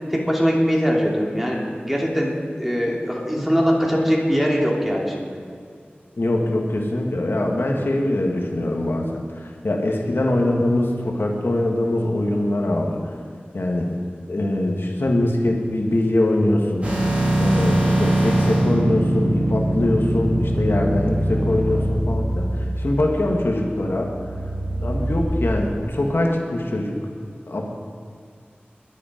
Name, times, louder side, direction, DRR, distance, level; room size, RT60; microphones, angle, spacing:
voice 1, 0.1-5.4, equal, 5° right, -2 dB, 3.0 m, -21 dB
voice 2, 6.2-13.1 13.5-13.9 14.3-16.9 17.4-24.1 24.8-27.0 27.5-27.7, left 1 dB, 75° left, 0 dB, 1.7 m, -22 dB
sound 1, 16.8-25.2, right 1 dB, 35° right, 4.8 m, -22 dB
22.0 x 8.6 x 5.2 m, 2.2 s
wide cardioid pair, 60°, 4 cm